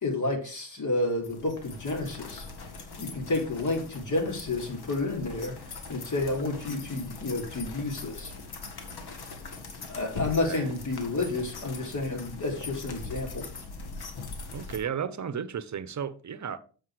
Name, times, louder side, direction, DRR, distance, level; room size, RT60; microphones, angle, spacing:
voice 1, 0.0-2.5 3.0-5.6 5.9-8.3 9.9-13.5, left 2 dB, 40° left, 3.2 m, -30 dB
sound 1, 1.1-14.8, left 3 dB, 60° left, 1.9 m, -41 dB
voice 2, 14.5-16.6, right 7 dB, 40° right, 1.0 m, -34 dB
7.4 x 5.5 x 4.9 m
supercardioid pair, 50°, 44 cm